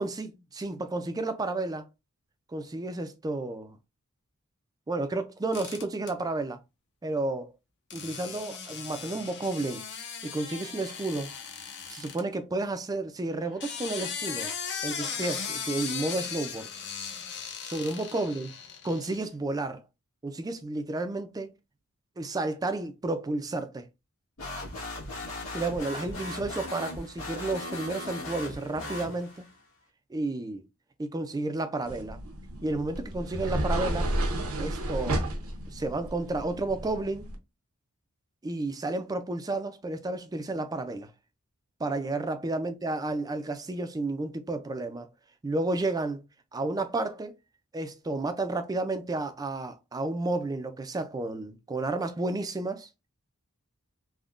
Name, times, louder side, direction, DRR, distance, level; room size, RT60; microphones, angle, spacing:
voice 1, 0.0-1.9 2.5-3.8 4.9-6.6 7.0-7.5 7.9-9.8 10.2-11.3 11.9-14.5 14.8-16.7 17.6-18.5 18.8-19.8 20.2-21.5 22.2-23.9 25.5-29.5 30.1-30.6 31.0-32.2 32.6-34.1 34.6-35.2 35.7-37.3 38.4-41.1 41.8-45.1 45.4-46.2 46.5-47.3 47.7-52.9, right 2 dB, 15° right, 0.3 m, -31 dB
sound 1, 5.5-6.1 7.9-12.2 13.4-19.2, left 6 dB, 55° left, 0.6 m, -38 dB
sound 2, 24.4-29.6, left 2 dB, 70° left, 1.3 m, -38 dB
sound 3, 31.9-37.4, right 1 dB, 70° right, 0.7 m, -32 dB
3.5 x 2.1 x 2.4 m
head